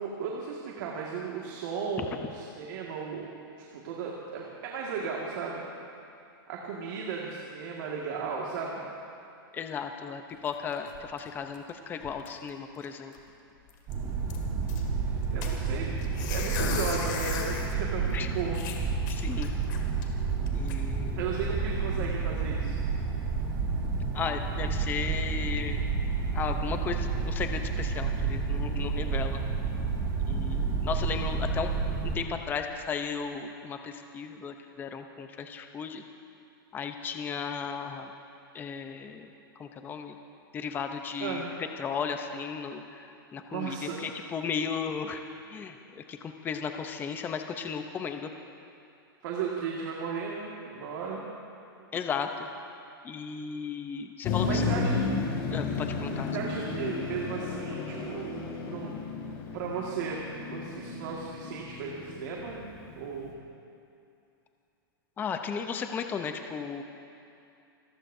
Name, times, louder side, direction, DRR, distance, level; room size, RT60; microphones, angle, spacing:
voice 1, 0.0-3.3 3.6-5.6 6.5-8.8 15.0-15.9 16.3-18.6 21.2-22.8 41.2-41.5 43.5-44.0 49.2-51.2 54.5-55.0 56.3-58.3 58.7-58.9 59.5-62.6 63.0-63.4, right 5 dB, 55° right, -2 dB, 1.9 m, -35 dB
voice 2, 9.5-13.1 18.1-18.3 19.1-19.5 20.5-21.2 24.1-25.8 26.3-29.4 30.2-31.7 32.1-36.0 36.7-38.1 38.5-40.2 40.5-41.4 41.8-45.2 45.5-48.3 51.9-52.5 53.0-54.6 55.5-56.3 65.2-66.8, left 6 dB, 15° left, 6 dB, 0.7 m, -35 dB
sound 1, 10.3-11.7 12.0-12.5 12.8-12.9 13.1-13.3 13.7-14.8 15.4-17.7 18.1-18.2 18.5-20.0 20.5-20.7, left 6 dB, 55° left, 2.2 m, -37 dB
sound 2, 13.9-32.2, right 5 dB, 30° right, 3.6 m, -30 dB
Motor vehicle (road), 54.2-63.2, left 4 dB, 40° left, 2.6 m, -33 dB
28.0 x 14.5 x 2.7 m, 2.6 s
hypercardioid pair, 150°, 12 cm